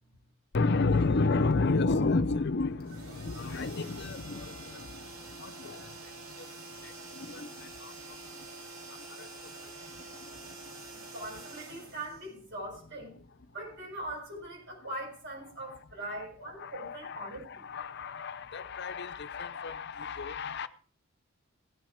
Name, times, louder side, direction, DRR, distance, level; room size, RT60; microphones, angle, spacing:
voice 1, 0.5-8.3 8.9-10.6 15.7-15.8 16.1-16.2 16.6-20.7, left 3 dB, 55° left, 0.6 m, -32 dB
sound 1, 2.8-12.8, right 3 dB, 85° right, 2.7 m, -47 dB
voice 2, 10.9-13.2 13.5-17.6, right 1 dB, 60° right, 7.0 m, -41 dB
16.0 x 7.4 x 5.0 m
head